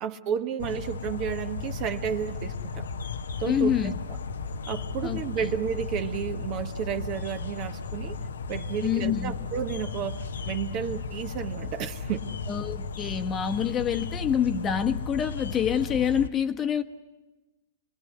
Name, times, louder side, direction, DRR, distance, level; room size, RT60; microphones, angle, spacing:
voice 1, 0.0-2.9 3.4-3.9 4.7-8.2 8.5-12.2, right 8 dB, 40° right, 8 dB, 1.4 m, -32 dB
sound 1, 0.6-16.3, left 4 dB, 70° left, 0.9 m, -35 dB
voice 2, 3.4-3.9 5.0-5.5 8.8-9.3 12.5-16.8, left 8 dB, 25° left, 8 dB, 1.2 m, -27 dB
28.0 x 21.5 x 8.0 m, 1.1 s
figure-of-eight pair, 105°, 0 cm